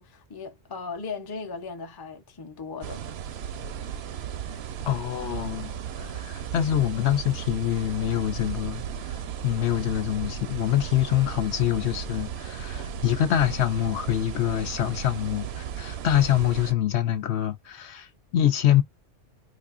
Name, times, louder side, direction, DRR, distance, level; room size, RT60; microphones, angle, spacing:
voice 1, 0.0-3.1, left 5 dB, 25° left, 0.5 m, -37 dB
sound 1, 2.8-16.7, right 8 dB, 65° right, 0.8 m, -35 dB
voice 2, 4.9-18.8, left 11 dB, 65° left, 0.8 m, -25 dB
4.1 x 2.6 x 2.4 m
omnidirectional pair, 1.3 m